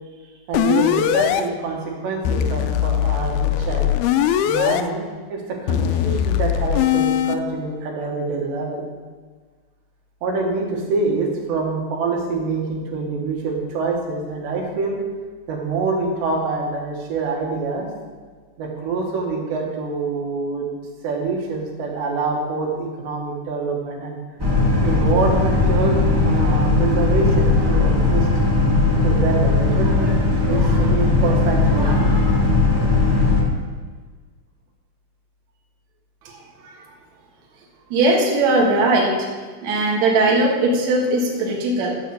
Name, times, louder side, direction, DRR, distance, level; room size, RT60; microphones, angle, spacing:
sound 1, 0.5-1.4 2.3-4.8 5.7-7.4, left 10 dB, 85° left, 2.3 m, -20 dB
voice 1, 0.5-3.9 4.5-8.8 10.2-15.0 15.5-17.9 18.6-20.7 21.0-24.2 24.8-28.3 29.0-30.0 30.4-31.9, right 4 dB, 80° right, -1 dB, 4.1 m, -25 dB
Boat Water vehicle, 24.4-33.4, left 3 dB, 20° right, 0.6 m, -18 dB
voice 2, 37.9-39.3 39.6-42.0, right 2 dB, 50° right, -2 dB, 2.6 m, -19 dB
12.5 x 7.2 x 6.8 m, 1.5 s
omnidirectional pair, 4.9 m